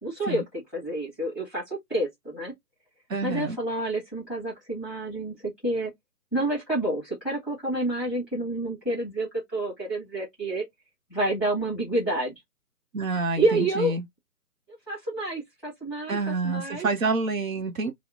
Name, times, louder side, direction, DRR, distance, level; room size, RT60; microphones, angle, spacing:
voice 1, 0.0-2.5 3.2-5.9 6.3-10.6 11.1-12.3 13.4-14.0 14.9-16.9, right 2 dB, ahead, 1.2 m, -29 dB
voice 2, 3.1-3.6 12.9-14.0 16.1-17.9, right 3 dB, 55° right, 0.8 m, -28 dB
2.8 x 2.0 x 3.6 m
hypercardioid pair, 155°, 47 cm